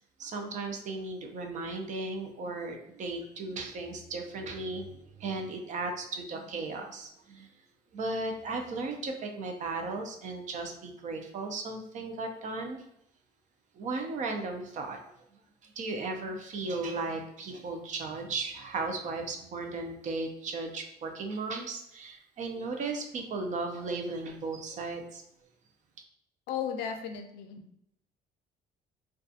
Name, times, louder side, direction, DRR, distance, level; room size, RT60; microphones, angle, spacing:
voice 1, 0.2-7.5 7.9-12.8 13.7-15.0 15.6-25.2, right 3 dB, 45° right, 4 dB, 0.5 m, -36 dB
voice 2, 26.5-27.6, left 8 dB, 80° left, 5 dB, 0.4 m, -35 dB
2.3 x 2.3 x 2.6 m, 0.75 s
cardioid pair, 110°, 17 cm